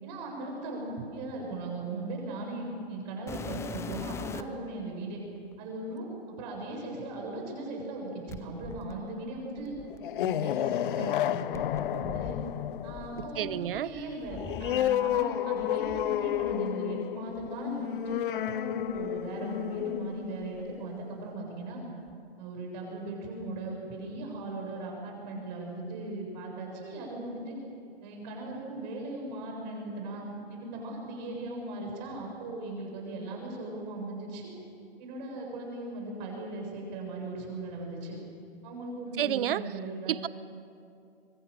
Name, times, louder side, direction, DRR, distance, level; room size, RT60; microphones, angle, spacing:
voice 1, 0.0-5.2 5.6-9.7 10.2-11.6 11.9-12.4 12.8-21.8 22.4-27.6 28.0-34.5 35.0-38.2 38.6-40.3, right 2 dB, 45° right, 0 dB, 7.4 m, -38 dB
sound 1, 3.3-4.7 5.5-5.6 8.3-10.4 11.5-15.3 15.5-16.6 17.4-17.5 18.1-18.2 18.9-20.0 20.2-20.8 22.1-22.2, left 7 dB, 10° left, 0.5 m, -44 dB
sound 2, 9.9-21.1, left 12 dB, 55° left, 0.7 m, -31 dB
voice 2, 13.2-13.9 39.2-40.3, right 12 dB, 60° right, 18 dB, 0.6 m, -31 dB
27.5 x 24.5 x 6.7 m, 2.5 s
hypercardioid pair, 135°, 31 cm